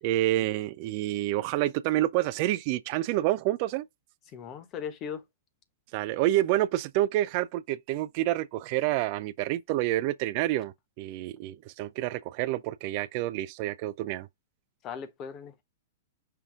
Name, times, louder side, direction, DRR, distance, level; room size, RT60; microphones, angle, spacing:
voice 1, 0.0-3.9 5.9-14.3, right 15 dB, 45° right, 0.3 m, -28 dB
voice 2, 4.3-5.2 14.8-15.6, left 7 dB, 30° left, 0.9 m, -38 dB
5.6 x 2.3 x 3.6 m
figure-of-eight pair, 105°, 0 cm